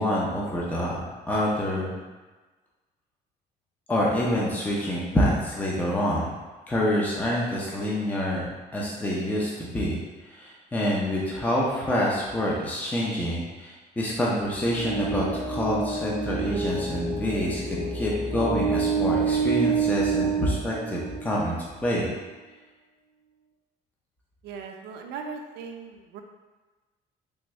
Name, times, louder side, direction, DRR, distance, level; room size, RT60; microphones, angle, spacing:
voice 1, 0.0-1.9 3.9-6.3 6.7-10.0 10.2-22.1, equal, 10° left, -4 dB, 0.6 m, -27 dB
sound 1, 14.5-21.5, right 5 dB, 45° right, 0.8 m, -28 dB
voice 2, 24.4-26.2, right 5 dB, 80° right, 4 dB, 0.4 m, -38 dB
3.5 x 2.5 x 3.1 m, 1.2 s
cardioid pair, 110°, 17 cm